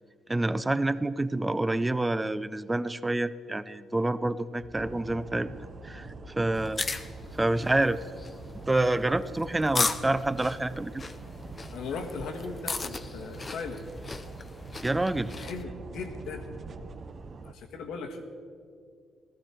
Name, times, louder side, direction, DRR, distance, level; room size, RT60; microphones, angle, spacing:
voice 1, 0.3-5.6 5.8-6.1 6.4-6.8 7.3-8.0 8.7-11.1 14.8-15.3, right 2 dB, 15° right, 15 dB, 0.5 m, -27 dB
sound 1, 4.6-17.0, left 3 dB, 60° left, 1.4 m, -50 dB
sound 2, 4.7-17.5, right 5 dB, 45° right, 0.7 m, -45 dB
sound 3, 6.6-15.6, left 3 dB, 30° left, 0.7 m, -36 dB
voice 2, 11.7-13.8 15.2-16.5 17.4-18.2, left 4 dB, 85° left, 3 dB, 1.5 m, -38 dB
16.0 x 13.5 x 4.4 m, 2.2 s
cardioid pair, 90°, 0 cm